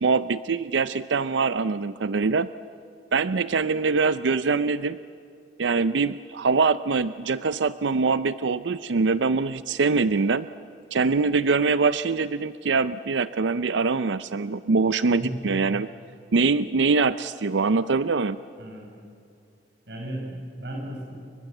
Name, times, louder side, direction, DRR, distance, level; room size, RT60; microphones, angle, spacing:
voice 1, 0.0-2.5 3.1-5.0 5.6-10.5 10.9-15.9 16.3-18.4, right 4 dB, 85° right, 14 dB, 0.5 m, -23 dB
voice 2, 19.9-21.1, right 1 dB, 65° right, 0 dB, 5.6 m, -35 dB
30.0 x 24.0 x 7.9 m, 2.5 s
head